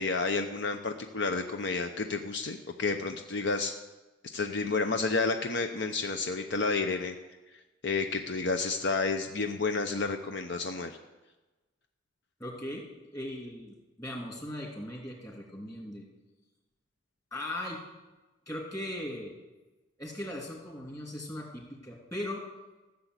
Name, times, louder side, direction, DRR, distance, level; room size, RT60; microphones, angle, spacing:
voice 1, 0.0-3.7 4.3-7.1 7.8-11.0, left 4 dB, 65° left, 6 dB, 0.7 m, -30 dB
voice 2, 12.4-12.9 13.1-16.0 17.3-17.8 18.5-19.3 20.0-22.4, left 1 dB, 20° left, -1 dB, 3.1 m, -38 dB
14.0 x 7.1 x 8.1 m, 1.1 s
head